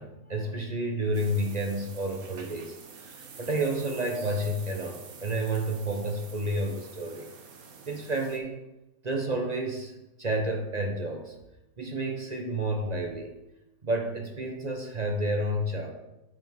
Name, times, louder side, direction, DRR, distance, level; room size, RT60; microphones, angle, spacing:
voice 1, 0.0-2.8 3.0-7.3 7.9-8.6 9.0-11.3 11.8-13.3 13.8-15.9, right 1 dB, 35° right, 2 dB, 0.8 m, -30 dB
sound 1, 1.1-8.4, right 5 dB, 70° right, 1.4 m, -48 dB
9.4 x 6.1 x 3.6 m, 0.97 s
omnidirectional pair, 1.6 m